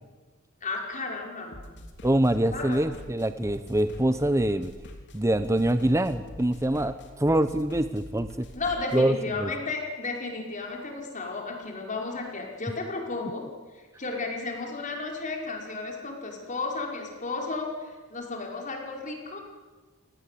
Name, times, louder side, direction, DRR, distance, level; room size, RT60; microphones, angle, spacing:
voice 1, 0.6-1.6 2.5-2.8 8.5-13.5 13.7-19.4, left 3 dB, 40° left, 1 dB, 5.5 m, -33 dB
sound 1, 1.5-9.0, left 1 dB, 55° left, 3.4 m, -45 dB
voice 2, 2.0-4.7 5.1-8.5 8.9-9.5, right 1 dB, 15° right, 11 dB, 0.8 m, -25 dB
28.5 x 19.5 x 8.5 m, 1.3 s
head